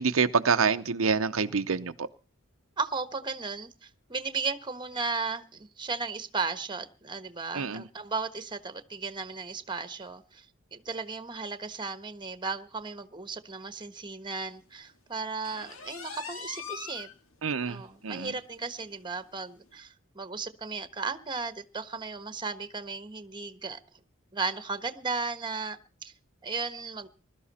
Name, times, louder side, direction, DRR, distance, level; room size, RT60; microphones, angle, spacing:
voice 1, 0.0-2.1 7.5-7.8 17.4-17.8 18.0-18.3, right 5 dB, 70° right, 0.7 m, -26 dB
voice 2, 2.8-10.5 10.7-17.1 17.7-23.8 24.3-26.1 26.4-27.1, right 4 dB, 20° right, 1.3 m, -35 dB
sound 1, 15.4-17.2 17.6-17.7 18.1-18.2 18.6-18.7 19.7-19.8, left 5 dB, 70° left, 2.0 m, -41 dB
21.0 x 12.5 x 4.2 m
head